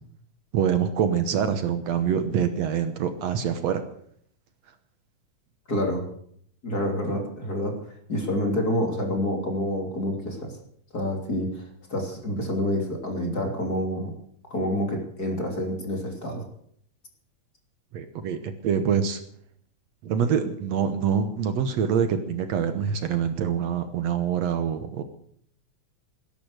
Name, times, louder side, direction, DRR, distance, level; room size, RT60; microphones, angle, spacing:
voice 1, 0.5-3.8 7.1-7.2 17.9-19.2 20.0-25.0, right 7 dB, 65° right, 9 dB, 2.2 m, -25 dB
voice 2, 5.7-6.1 6.6-10.6 10.9-14.1 14.5-16.4, left 1 dB, 30° left, 2 dB, 3.3 m, -28 dB
19.5 x 11.0 x 6.5 m, 0.65 s
omnidirectional pair, 3.4 m